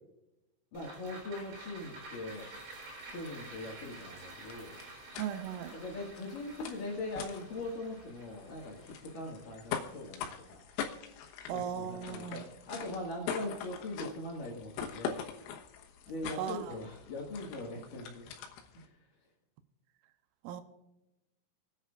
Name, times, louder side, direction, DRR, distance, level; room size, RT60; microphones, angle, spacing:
voice 1, 0.7-2.5 3.1-4.7 5.7-10.6 11.5-15.2 16.1-18.3 18.7-18.9, left 2 dB, 55° left, -1 dB, 2.8 m, -41 dB
sound 1, 0.7-11.3 11.6-11.7, right 2 dB, 60° right, 6.0 m, -51 dB
sound 2, 2.3-18.9, left 7 dB, 80° left, 3.7 m, -44 dB
voice 2, 5.2-5.8 11.5-12.5 16.4-16.8 20.4-20.6, right 9 dB, 80° right, 9 dB, 3.3 m, -37 dB
28.5 x 9.8 x 2.5 m, 0.96 s
omnidirectional pair, 5.9 m